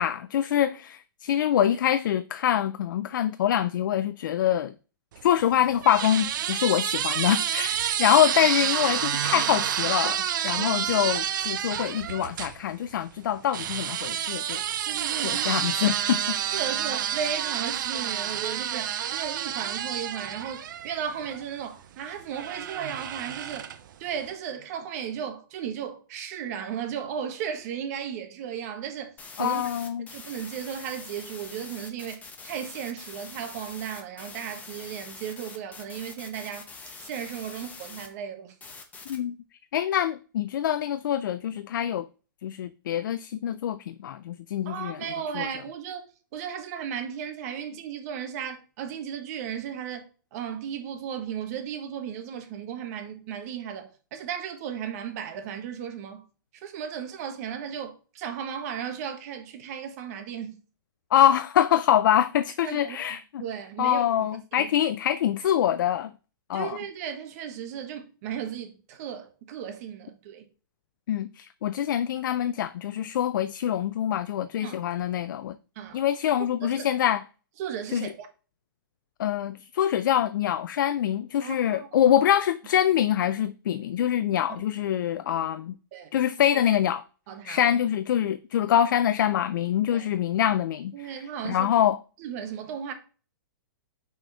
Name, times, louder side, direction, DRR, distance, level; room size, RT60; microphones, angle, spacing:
voice 1, 0.0-4.7 5.2-14.6 15.2-16.6 29.4-30.1 39.1-39.3 39.7-42.1 42.4-45.0 45.3-45.5 61.1-63.4 63.8-66.1 66.5-66.8 71.1-75.5 75.9-77.2 77.9-78.1 79.2-85.7 86.1-87.0 87.4-92.0, left 10 dB, 65° left, 0.4 m, -25 dB
sound 1, 5.2-12.5 13.5-21.4 22.3-23.9, right 10 dB, 60° right, 0.6 m, -29 dB
voice 2, 10.6-10.9 14.8-15.9 16.5-23.7 24.0-29.1 29.4-29.7 30.1-36.7 37.0-38.5 44.6-46.1 46.3-56.2 56.5-60.6 62.6-64.0 64.6-64.7 66.5-70.4 74.6-74.8 75.7-76.0 76.6-76.9 77.6-78.3 81.4-82.2 85.9-86.1 87.3-87.7 88.6-88.7 89.9-90.1 90.9-91.7 92.2-92.9, right 8 dB, 45° right, 1.4 m, -35 dB
sound 2, 29.2-38.1 38.6-39.2, left 4 dB, 15° left, 1.0 m, -44 dB
5.7 x 4.3 x 5.6 m
hypercardioid pair, 140°, 12 cm